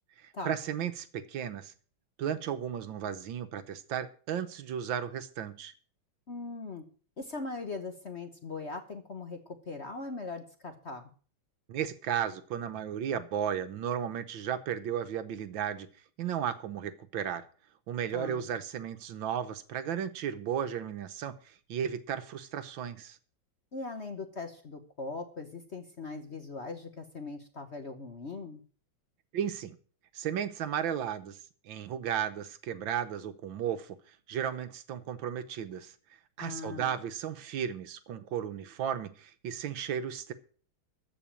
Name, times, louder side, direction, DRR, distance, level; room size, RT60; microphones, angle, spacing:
voice 1, 0.2-1.7 2.2-5.7 11.7-15.9 16.2-17.4 17.9-23.2 29.3-29.8 30.1-31.4 31.6-35.9 36.4-40.3, right 9 dB, 70° right, 11 dB, 1.6 m, -34 dB
voice 2, 6.3-6.8 7.2-11.1 18.1-18.4 23.7-28.6 36.4-36.9, left 3 dB, 40° left, 7 dB, 1.1 m, -40 dB
14.5 x 5.1 x 8.7 m, 0.42 s
omnidirectional pair, 2.2 m